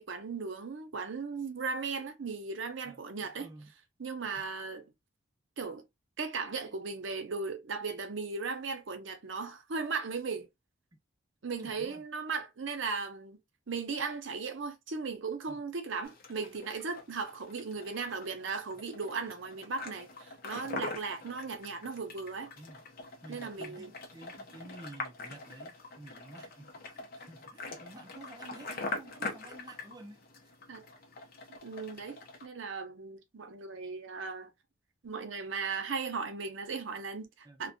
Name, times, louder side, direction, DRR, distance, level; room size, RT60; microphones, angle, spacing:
voice 1, 0.0-3.5 4.0-4.9 5.6-5.8 6.2-10.5 11.4-13.4 13.7-22.5 23.3-23.9 30.7-30.8 31.5-34.5 35.0-37.7, right 4 dB, 65° right, 0.6 m, -37 dB
voice 2, 2.8-3.7 4.2-4.5 6.6-6.7 11.6-12.0 15.5-15.6 22.6-22.8 23.2-30.5 37.5-37.6, right 2 dB, 20° right, 0.4 m, -51 dB
sound 1, 16.0-32.5, left 3 dB, 45° left, 0.6 m, -44 dB
2.6 x 2.1 x 2.5 m
head